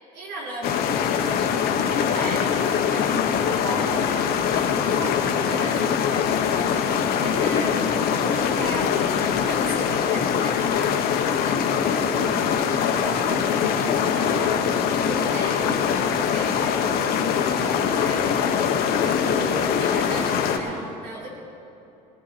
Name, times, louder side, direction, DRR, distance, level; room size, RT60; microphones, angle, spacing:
voice 1, 0.1-14.6 15.0-18.6 19.0-21.3, right 1 dB, 75° right, -4 dB, 4.3 m, -36 dB
sound 1, 0.6-20.6, left 7 dB, 65° left, 1.3 m, -23 dB
20.0 x 13.0 x 4.3 m, 2.8 s
supercardioid pair, 80°, 17 cm